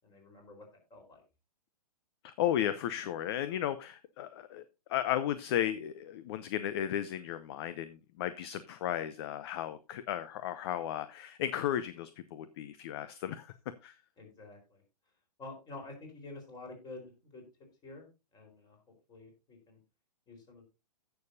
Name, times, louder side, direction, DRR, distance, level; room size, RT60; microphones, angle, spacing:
voice 1, 0.0-1.2 14.2-14.8 15.4-17.5 17.8-19.8 20.3-20.6, left 2 dB, 20° left, 2 dB, 4.3 m, -49 dB
voice 2, 2.2-4.6 4.9-13.5 13.8-13.9, left 11 dB, 40° left, 14 dB, 0.6 m, -34 dB
16.0 x 6.8 x 2.7 m, 0.27 s
hypercardioid pair, 125°, 20 cm